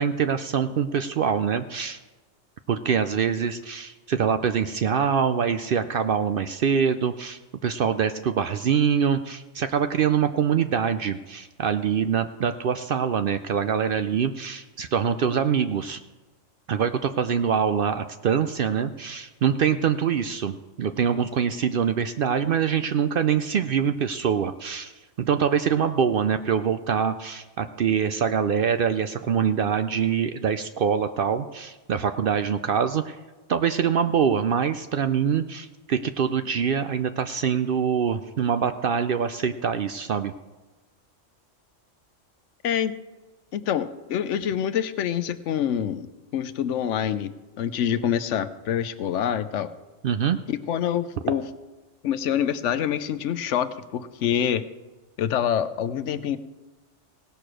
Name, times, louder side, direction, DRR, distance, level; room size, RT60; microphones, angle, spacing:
voice 1, 0.0-2.0 2.7-16.0 16.7-24.9 25.2-33.2 33.5-40.3 50.0-50.4, right 7 dB, 60° right, 10 dB, 0.6 m, -24 dB
voice 2, 43.5-46.1 46.3-47.3 47.6-49.7 50.5-51.4 52.0-54.7 55.2-56.4, left 9 dB, 75° left, 12 dB, 1.0 m, -26 dB
17.5 x 6.7 x 6.2 m, 1.2 s
omnidirectional pair, 1.3 m